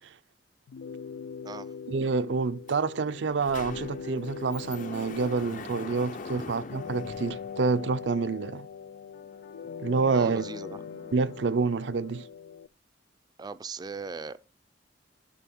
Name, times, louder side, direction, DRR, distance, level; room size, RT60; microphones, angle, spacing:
sound 1, 0.7-12.7, left 6 dB, 85° left, 0.3 m, -42 dB
voice 1, 1.9-8.7 9.8-10.4 11.1-12.3, right 4 dB, 75° right, 0.5 m, -28 dB
Sliding door, 2.7-2.8 3.1-8.1, left 4 dB, 45° left, 0.6 m, -43 dB
sound 2, 3.6-12.3, left 2 dB, 65° left, 1.3 m, -52 dB
voice 2, 10.1-10.8 13.4-14.4, right 4 dB, 20° right, 0.4 m, -38 dB
11.5 x 4.2 x 6.0 m
head